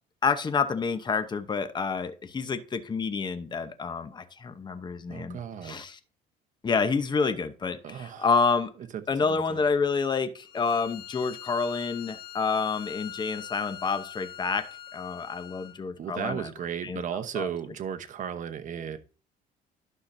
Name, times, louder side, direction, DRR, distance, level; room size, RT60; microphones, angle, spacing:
voice 1, 0.2-6.0 6.6-8.7 9.1-14.6 14.9-17.7, left 5 dB, 25° left, 0.9 m, -29 dB
voice 2, 5.1-5.8 7.8-8.3 9.2-9.6 16.0-19.0, right 8 dB, 50° right, 1.0 m, -35 dB
Bowed string instrument, 10.4-15.8, left 11 dB, 70° left, 1.2 m, -43 dB
12.0 x 5.7 x 2.7 m
cardioid pair, 110°, 17 cm